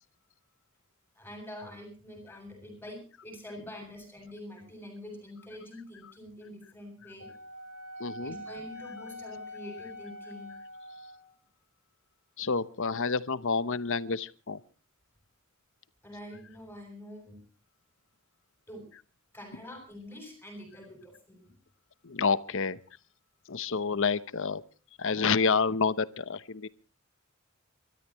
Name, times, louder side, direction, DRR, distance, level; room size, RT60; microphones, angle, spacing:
voice 1, 1.2-7.3 8.2-10.5 16.0-17.4 18.7-18.9 19.3-21.5, left 1 dB, 10° left, 7.6 m, -45 dB
Wind instrument woodwind instrument, 7.2-11.3, left 1 dB, 60° right, 7.4 m, -44 dB
voice 2, 8.0-8.4 12.4-14.6 22.0-22.8 23.5-24.6 25.0-26.7, left 5 dB, 65° left, 0.9 m, -28 dB
30.0 x 13.5 x 3.1 m
head